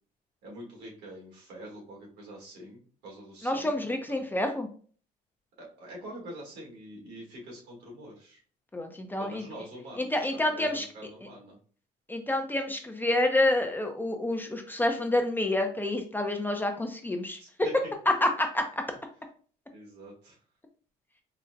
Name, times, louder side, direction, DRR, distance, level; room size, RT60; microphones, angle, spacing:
voice 1, 0.4-3.7 4.1-4.2 5.6-8.4 9.2-11.6 17.4-17.9 19.7-20.4, right 1 dB, 80° right, -2 dB, 1.5 m, -45 dB
voice 2, 3.4-4.7 8.7-9.4 10.0-10.9 12.1-17.4 18.2-18.6, left 1 dB, 10° left, 4 dB, 0.4 m, -28 dB
3.8 x 2.0 x 2.5 m, 0.43 s
cardioid pair, 110°, 17 cm